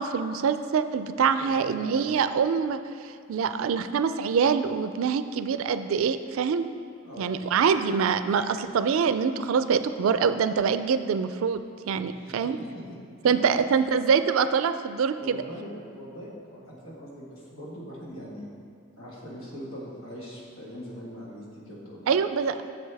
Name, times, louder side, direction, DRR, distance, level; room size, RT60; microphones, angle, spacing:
voice 1, 0.0-2.8 3.3-6.7 7.2-12.6 13.2-15.4 22.1-22.5, right 6 dB, 75° right, 11 dB, 0.3 m, -25 dB
voice 2, 1.4-2.0 7.0-7.7 12.1-13.0 13.2-13.4 15.2-18.5 19.0-22.1, equal, 90° left, -4 dB, 1.6 m, -42 dB
7.9 x 6.7 x 3.4 m, 2.3 s
head